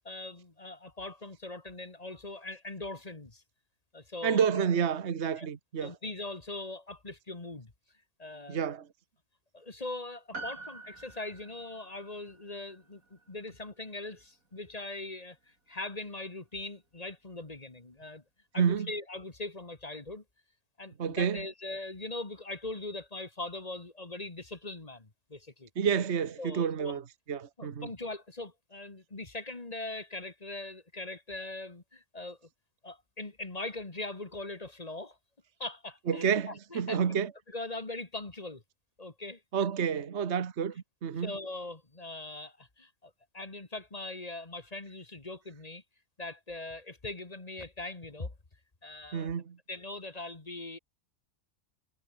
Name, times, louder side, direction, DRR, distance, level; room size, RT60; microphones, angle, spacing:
voice 1, 0.0-3.4 3.9-4.5 5.4-5.5 5.8-7.7 8.2-8.6 9.5-15.4 15.7-18.2 18.5-20.2 20.8-25.7 26.4-27.0 27.6-32.5 32.8-35.2 35.6-37.1 37.5-38.6 39.0-39.4 41.2-45.8 46.2-48.3 48.8-49.3 49.7-50.8, left 2 dB, 30° left, 2.0 m, -41 dB
voice 2, 4.2-5.9 8.5-8.9 18.6-18.9 21.0-21.5 25.8-27.9 36.1-37.3 39.5-41.3 49.1-49.6, right 7 dB, 55° right, 1.5 m, -29 dB
Piano, 10.3-14.9 15.2-15.3, right 3 dB, 85° right, 4.3 m, -47 dB
omnidirectional pair, 1.4 m